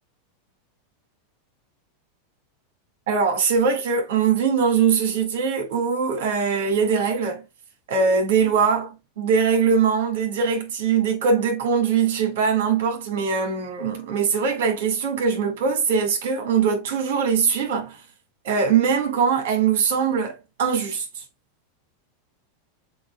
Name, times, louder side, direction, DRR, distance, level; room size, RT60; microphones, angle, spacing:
voice 1, 3.1-7.4 7.9-18.0 18.4-21.2, right 6 dB, 75° right, 2.0 m, -22 dB
7.7 x 2.7 x 2.3 m
hypercardioid pair, 110°, 0 cm